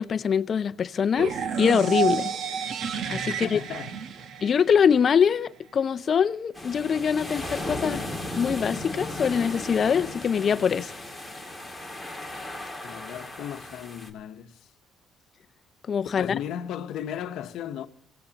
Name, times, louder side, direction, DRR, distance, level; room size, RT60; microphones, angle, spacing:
voice 1, 0.0-2.3 3.1-3.6 4.4-8.0 8.4-11.0 15.9-16.3, left 7 dB, 40° left, 0.5 m, -23 dB
sound 1, 1.2-5.1, right 7 dB, 55° right, 1.2 m, -30 dB
voice 2, 3.4-4.1 12.8-14.6 16.2-17.9, left 9 dB, 70° left, 0.9 m, -36 dB
sound 2, 6.5-14.1, left 1 dB, ahead, 2.3 m, -36 dB
24.0 x 17.0 x 2.9 m
cardioid pair, 125°, 0 cm